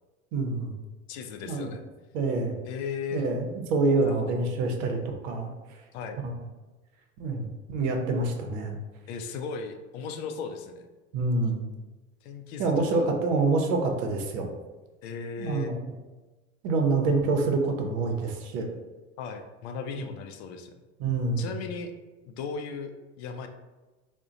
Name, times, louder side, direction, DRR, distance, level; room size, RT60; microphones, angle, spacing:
voice 1, 0.3-0.7 1.4-1.7 2.1-2.6 3.1-5.5 7.2-8.8 11.1-11.6 12.6-14.5 15.4-15.9 16.6-18.7 20.0-20.1 21.0-21.5, right 3 dB, 55° right, 3 dB, 0.7 m, -26 dB
voice 2, 1.1-1.8 2.7-3.2 4.0-4.1 5.9-6.2 9.1-10.9 12.2-13.1 15.0-15.7 19.2-20.7 21.4-21.9 22.2-23.5, left 5 dB, 55° left, 6 dB, 0.5 m, -36 dB
2.3 x 2.2 x 3.9 m, 1.2 s
hypercardioid pair, 80°, 40 cm